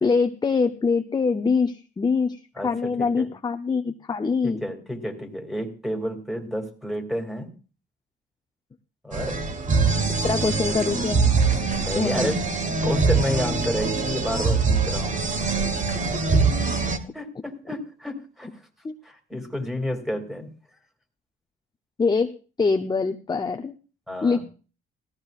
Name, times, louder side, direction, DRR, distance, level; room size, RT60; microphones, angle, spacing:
voice 1, 0.0-4.6 10.2-11.3 11.9-12.3 18.8-18.9 22.0-22.3 22.6-23.7 24.2-24.4, left 4 dB, 20° left, 5 dB, 0.6 m, -24 dB
voice 2, 2.6-3.3 4.4-7.5 9.0-9.4 11.8-15.2 16.1-16.2 17.1-18.5 19.0-20.5 24.1-24.4, left 1 dB, ahead, 2 dB, 2.4 m, -30 dB
sound 1, 9.1-17.0, right 4 dB, 40° right, 1.3 m, -23 dB
17.0 x 14.0 x 2.4 m, 0.36 s
cardioid pair, 90°, 20 cm